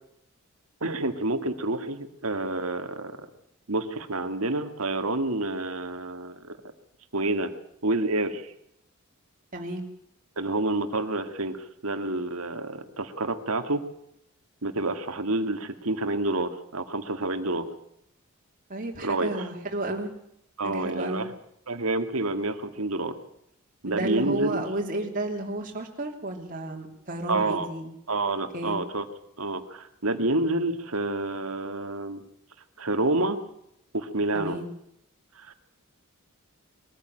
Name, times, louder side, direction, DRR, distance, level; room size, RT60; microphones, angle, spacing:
voice 1, 0.8-3.1 3.7-6.6 7.1-7.5 7.8-8.5 10.4-13.8 14.6-17.7 19.0-19.5 20.6-21.3 21.7-23.1 23.8-24.6 27.3-27.7 28.1-29.1 29.4-32.2 32.8-33.4 33.9-34.6 35.4-35.5, right 2 dB, 75° right, 8 dB, 2.1 m, -28 dB
voice 2, 9.5-9.8 18.7-20.1 20.6-21.2 23.9-27.9 28.5-28.8 34.3-34.6, right 1 dB, 40° right, 0 dB, 3.0 m, -32 dB
22.0 x 14.5 x 9.0 m, 0.75 s
head